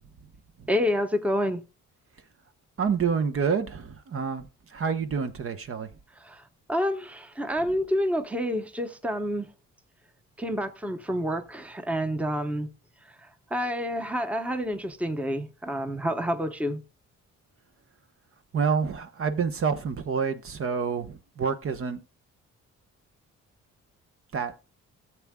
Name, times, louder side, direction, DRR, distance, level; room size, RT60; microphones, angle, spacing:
voice 1, 0.7-1.6 6.2-6.4 6.7-9.5 10.4-12.7 13.2-16.8, equal, 5° right, 0.9 m, -28 dB
voice 2, 2.8-4.4 4.7-5.9 18.5-22.0 24.3-24.5, right 6 dB, 45° right, 0.9 m, -28 dB
14.0 x 7.4 x 2.2 m
cardioid pair, 90°, 30 cm